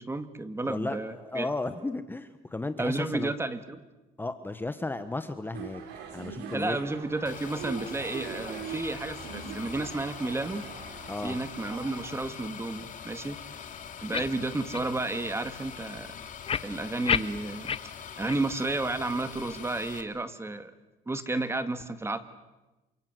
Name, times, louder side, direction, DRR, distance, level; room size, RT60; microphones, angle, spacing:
voice 1, 0.0-1.5 2.8-3.8 6.5-10.6 11.2-13.4 14.0-16.2 16.6-20.7 21.1-22.2, right 2 dB, 15° right, 10 dB, 1.9 m, -32 dB
voice 2, 0.6-3.3 4.2-5.8 6.1-6.8 11.1-11.4, left 2 dB, 10° left, 10 dB, 1.3 m, -34 dB
sound 1, 5.5-12.1, right 6 dB, 85° right, 4.5 m, -42 dB
sound 2, 7.3-20.0, left 7 dB, 50° left, 2.9 m, -43 dB
sound 3, 14.1-14.3 14.7-14.9 15.3-15.4 16.5-17.8 18.3-18.4 18.9-19.0, left 7 dB, 35° left, 0.9 m, -29 dB
28.5 x 25.5 x 7.9 m, 1.1 s
cardioid pair, 110°, 17 cm